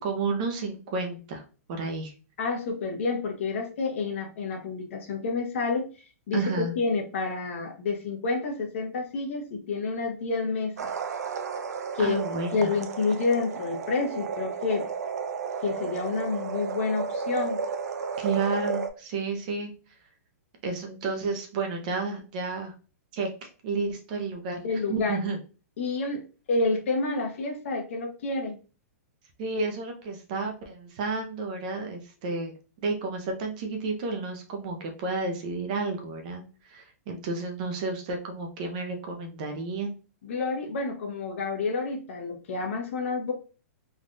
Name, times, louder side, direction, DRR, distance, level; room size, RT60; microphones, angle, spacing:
voice 1, 0.0-1.4 1.7-2.1 6.3-6.7 12.0-12.7 18.2-19.7 20.6-22.7 23.1-24.6 24.9-25.4 29.4-32.5 32.8-39.9, right 3 dB, 30° right, 4 dB, 0.5 m, -31 dB
voice 2, 2.4-5.9 6.3-10.9 11.9-12.2 12.5-14.8 15.6-17.6 24.6-25.2 25.8-28.6 40.2-43.3, left 4 dB, 50° left, 2 dB, 0.9 m, -29 dB
sound 1, 10.8-18.9, right 5 dB, 80° right, 0.5 m, -33 dB
3.3 x 2.3 x 2.6 m, 0.35 s
hypercardioid pair, 175°, 9 cm